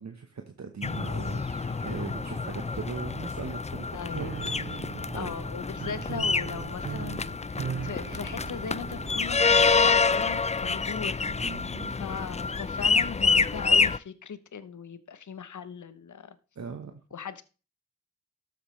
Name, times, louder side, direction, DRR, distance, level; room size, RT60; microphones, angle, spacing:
voice 1, 0.0-3.9 4.2-4.3 4.8-5.3 11.3-11.9 16.6-17.0, right 5 dB, 70° right, 1.1 m, -39 dB
sound 1, 0.8-14.0, left 4 dB, 25° left, 0.4 m, -27 dB
sound 2, 1.0-6.0, right 2 dB, 20° right, 1.3 m, -51 dB
voice 2, 3.9-4.4 5.1-11.3 11.9-16.4 17.1-17.4, left 6 dB, 85° left, 0.8 m, -39 dB
Piano, 4.1-10.1, right 7 dB, 40° right, 0.5 m, -39 dB
12.0 x 7.8 x 3.2 m
cardioid pair, 40°, 29 cm